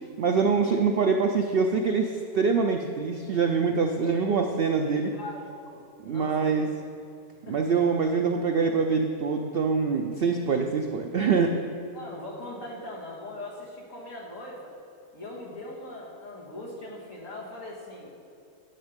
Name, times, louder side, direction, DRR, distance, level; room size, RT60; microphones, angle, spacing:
voice 1, 0.0-5.1 6.0-6.7 7.5-11.5, right 5 dB, 85° right, 4 dB, 0.5 m, -25 dB
voice 2, 4.9-6.7 7.4-7.6 11.9-14.7 15.1-18.1, left 1 dB, 55° left, -3 dB, 2.0 m, -41 dB
10.0 x 6.4 x 5.2 m, 2.6 s
omnidirectional pair, 1.6 m